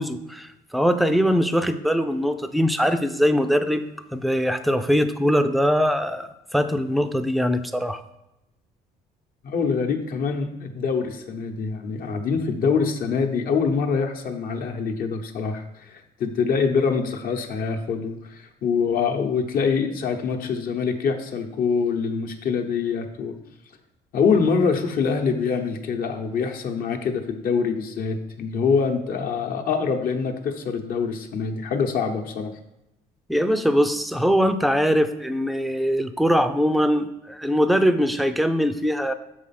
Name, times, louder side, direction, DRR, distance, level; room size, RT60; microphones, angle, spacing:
voice 1, 0.0-8.0 33.3-39.1, equal, ahead, 10 dB, 0.5 m, -22 dB
voice 2, 9.4-23.4 24.1-32.5, left 5 dB, 60° left, 5 dB, 1.0 m, -25 dB
6.7 x 4.8 x 5.8 m, 0.91 s
cardioid pair, 110°, 17 cm